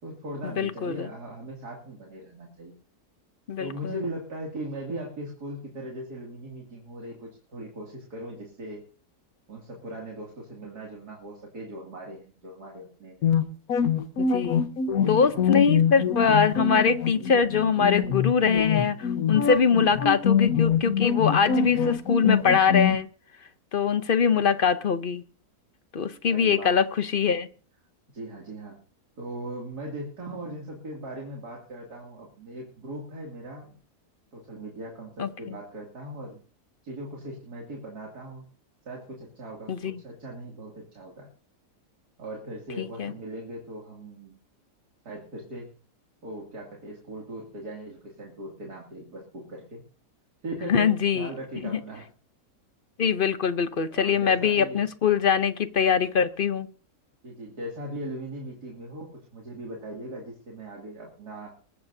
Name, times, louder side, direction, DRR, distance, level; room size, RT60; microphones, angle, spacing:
voice 1, 0.0-2.8 3.6-8.8 9.5-13.3 14.9-15.7 26.3-26.8 28.1-28.8 29.2-33.8 34.3-36.4 36.8-38.4 38.8-41.3 42.2-44.3 45.0-45.7 46.2-49.8 50.4-52.1 53.9-54.8 57.2-61.5, right 1 dB, 80° right, 3.1 m, -39 dB
voice 2, 0.6-1.1 3.5-3.9 14.2-14.6 15.1-23.1 23.7-25.2 25.9-27.5 35.2-35.5 39.7-40.0 42.8-43.1 50.7-51.3 53.0-56.7, left 6 dB, 50° left, 0.7 m, -23 dB
sound 1, 13.2-23.0, left 7 dB, 65° left, 1.5 m, -24 dB
21.0 x 13.5 x 2.7 m
omnidirectional pair, 1.7 m